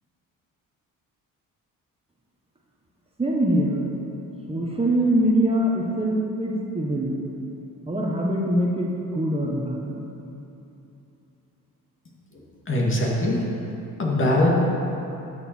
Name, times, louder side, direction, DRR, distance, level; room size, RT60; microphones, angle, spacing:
voice 1, 3.2-3.8 4.5-7.2 7.9-10.0, right 1 dB, 15° right, -3 dB, 1.4 m, -23 dB
voice 2, 12.7-13.4 14.0-14.5, left 1 dB, 35° left, -2 dB, 2.2 m, -21 dB
12.0 x 6.7 x 4.6 m, 2.9 s
supercardioid pair, 75°, 34 cm